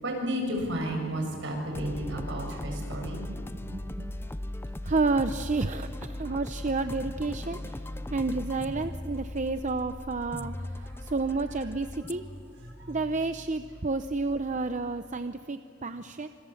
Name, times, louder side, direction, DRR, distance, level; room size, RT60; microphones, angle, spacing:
voice 1, 0.0-3.2 12.6-13.0, right 1 dB, 70° right, 1 dB, 7.2 m, -32 dB
sound 1, 1.7-15.1, left 1 dB, 10° left, 0.6 m, -39 dB
voice 2, 2.8-4.3 4.8-7.8 8.1-12.2 12.9-16.3, right 3 dB, 40° right, 9 dB, 0.7 m, -31 dB
28.0 x 27.0 x 7.2 m, 2.5 s
head